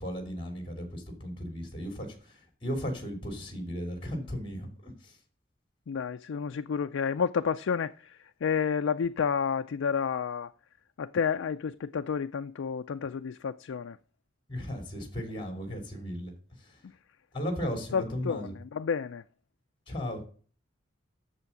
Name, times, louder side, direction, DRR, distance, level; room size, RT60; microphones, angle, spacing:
voice 1, 0.0-5.1 14.5-16.3 16.6-16.7 17.3-18.5 19.9-20.2, equal, 25° left, 2.9 m, -36 dB
voice 2, 5.9-10.5 11.0-14.0 17.9-19.2, left 6 dB, 85° left, 0.4 m, -30 dB
8.2 x 7.0 x 7.2 m
head